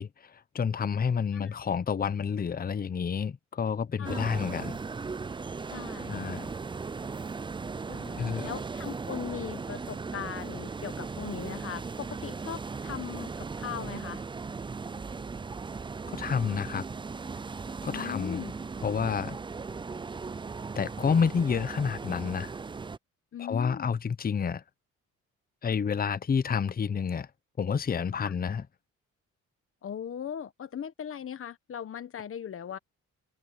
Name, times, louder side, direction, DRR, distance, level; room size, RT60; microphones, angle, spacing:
voice 1, 0.0-4.8 6.1-6.5 8.2-8.5 16.1-16.8 17.8-18.4 18.8-19.4 20.7-22.5 23.4-24.6 25.6-27.3 27.6-28.7, left 6 dB, 30° left, 0.8 m, -29 dB
voice 2, 4.0-4.3 5.7-6.4 7.9-14.2 17.9-18.5 23.3-23.9 28.2-28.3 29.8-32.8, left 8 dB, 45° left, 1.3 m, -39 dB
sound 1, 4.0-23.0, right 4 dB, 15° right, 0.4 m, -37 dB
cardioid pair, 90°, 30 cm